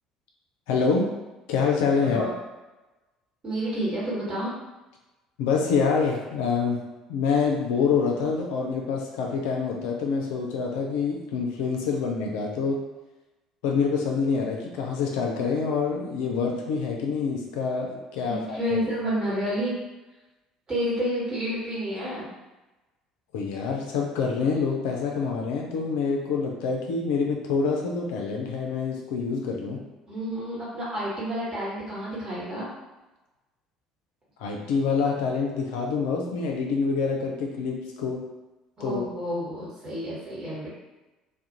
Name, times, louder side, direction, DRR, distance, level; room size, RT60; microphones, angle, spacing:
voice 1, 0.7-1.1 1.5-2.3 5.4-6.8 7.1-12.8 13.6-18.8 23.3-29.8 34.4-38.2 38.8-39.0, left 5 dB, 60° left, 0 dB, 0.4 m, -26 dB
voice 2, 2.0-2.3 3.4-4.5 18.3-19.8 20.7-22.3 30.1-32.7 38.8-40.8, equal, 30° right, -7 dB, 1.2 m, -30 dB
2.3 x 2.1 x 2.8 m, 1.1 s
figure-of-eight pair, 55°, 3 cm